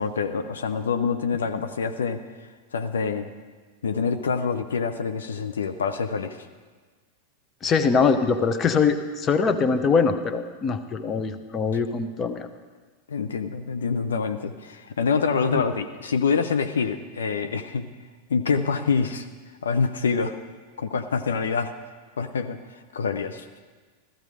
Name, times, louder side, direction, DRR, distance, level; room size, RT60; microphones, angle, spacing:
voice 1, 0.0-2.2 2.7-3.3 3.8-6.5 13.1-17.9 18.3-19.3 19.6-20.4 20.8-21.7 22.2-22.6 22.9-23.5, left 5 dB, 65° left, 8 dB, 0.7 m, -26 dB
voice 2, 7.6-12.5 15.5-15.6, left 5 dB, 25° left, 9 dB, 0.9 m, -23 dB
15.0 x 14.0 x 4.9 m, 1.4 s
figure-of-eight pair, 90°, 0 cm